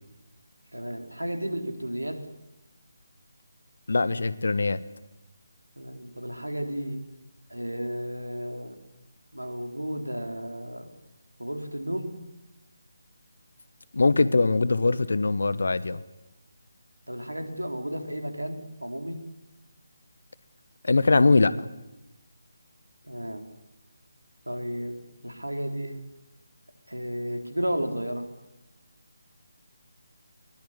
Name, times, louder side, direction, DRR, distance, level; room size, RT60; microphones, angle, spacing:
voice 1, 0.7-2.2 5.8-7.0 7.5-8.8 9.3-10.9 11.4-12.1 17.1-19.2 23.0-23.5 24.5-26.0 26.9-28.3, equal, 85° right, 6 dB, 4.1 m, -33 dB
voice 2, 3.9-4.8 13.9-16.0 20.8-21.5, left 3 dB, 60° left, 16 dB, 1.4 m, -22 dB
21.5 x 20.5 x 9.9 m, 0.95 s
figure-of-eight pair, 150°, 0 cm